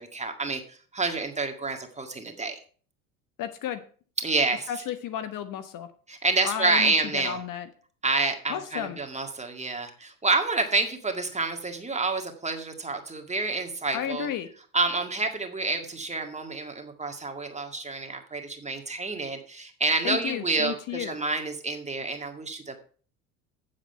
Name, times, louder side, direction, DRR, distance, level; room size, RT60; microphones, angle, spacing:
voice 1, 0.0-2.6 4.2-4.7 6.1-7.4 8.0-14.3 14.7-22.8, right 3 dB, 15° right, 4 dB, 1.9 m, -28 dB
voice 2, 3.4-3.8 4.7-5.9 6.4-7.7 8.5-9.0 13.9-14.5 20.0-21.2, left 10 dB, 45° left, 10 dB, 1.1 m, -32 dB
8.5 x 7.4 x 5.5 m, 0.43 s
hypercardioid pair, 70°, 44 cm